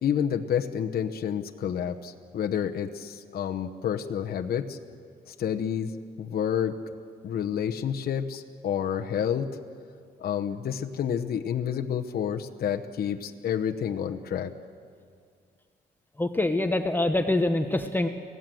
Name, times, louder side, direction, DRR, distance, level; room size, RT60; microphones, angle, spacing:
voice 1, 0.0-4.8 5.3-6.8 7.2-9.5 10.2-14.5, left 8 dB, 65° left, 4 dB, 1.0 m, -29 dB
voice 2, 16.2-18.1, left 2 dB, 10° left, 6 dB, 1.0 m, -25 dB
26.0 x 17.0 x 7.8 m, 2.2 s
cardioid pair, 120°, 17 cm